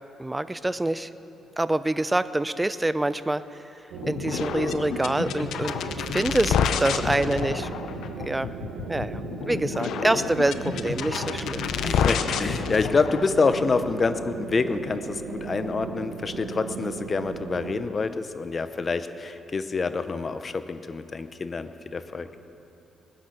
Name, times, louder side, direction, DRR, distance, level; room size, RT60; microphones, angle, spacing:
voice 1, 0.2-1.1 1.6-7.7 8.2-8.5 8.9-12.0, right 1 dB, 10° right, 14 dB, 0.6 m, -26 dB
sound 1, 3.9-17.9, right 7 dB, 85° right, 1.1 m, -37 dB
sound 2, 4.0-13.3, left 7 dB, 75° left, 0.7 m, -29 dB
voice 2, 11.8-22.3, left 4 dB, 35° left, 10 dB, 0.9 m, -27 dB
21.0 x 10.5 x 6.3 m, 2.9 s
cardioid pair, 90°, 0 cm